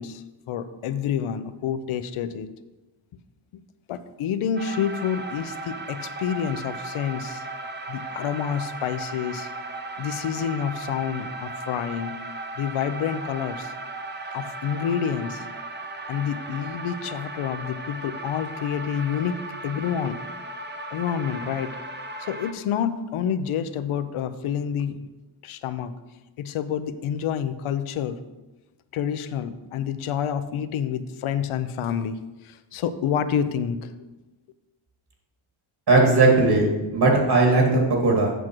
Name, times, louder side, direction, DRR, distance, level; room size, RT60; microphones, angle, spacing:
voice 1, 0.0-2.5 3.9-7.4 7.9-9.5 10.0-12.2 12.6-13.7 14.3-15.5 16.1-20.2 20.9-21.8 22.2-25.1 25.4-25.9 26.4-28.2 28.9-33.9, left 8 dB, 80° left, 11 dB, 0.7 m, -28 dB
sound 1, 4.6-22.5, right 2 dB, 20° right, 0.7 m, -36 dB
voice 2, 35.9-38.3, right 3 dB, 50° right, 0 dB, 2.2 m, -18 dB
8.2 x 6.2 x 4.5 m, 1.1 s
wide cardioid pair, 120°, 49 cm